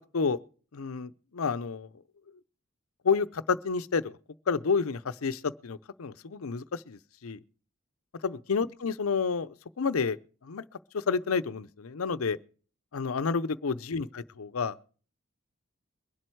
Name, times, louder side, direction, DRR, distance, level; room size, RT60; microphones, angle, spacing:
voice 1, 0.7-1.9 3.0-4.2 4.5-7.4 8.2-10.2 10.4-10.6 10.9-12.4 12.9-14.8, left 5 dB, 90° left, 0.6 m, -30 dB
22.5 x 7.7 x 4.6 m
head